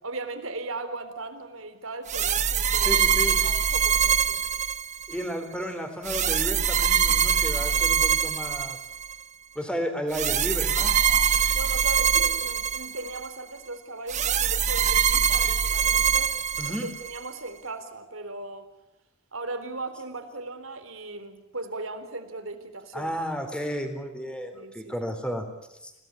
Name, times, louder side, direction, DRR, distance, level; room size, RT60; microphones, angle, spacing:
voice 1, 0.0-3.0 3.4-4.4 11.5-16.4 16.7-18.7 19.3-23.1 24.5-25.0, right 2 dB, 75° right, 8 dB, 3.8 m, -37 dB
sound 1, 2.1-5.2 6.1-9.2 10.1-13.3 14.1-17.2, right 7 dB, 35° right, 1.2 m, -24 dB
voice 2, 2.8-3.4 5.1-8.8 9.6-11.4 16.6-16.9 22.9-25.5 25.7-25.9, equal, 5° left, 6 dB, 3.9 m, -33 dB
30.0 x 18.0 x 8.7 m, 0.91 s
head